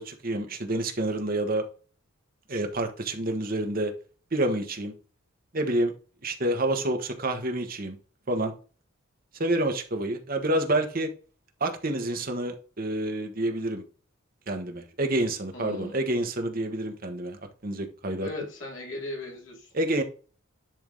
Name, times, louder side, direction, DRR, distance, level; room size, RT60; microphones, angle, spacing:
voice 1, 0.0-1.7 2.5-3.9 4.3-4.9 5.5-5.9 6.2-8.0 8.3-8.5 9.4-11.1 11.6-13.8 14.5-18.3 19.7-20.0, right 1 dB, 45° right, 1.3 m, -28 dB
voice 2, 15.5-16.0 18.1-19.7, left 1 dB, 60° left, 2.6 m, -38 dB
10.5 x 3.5 x 3.9 m
head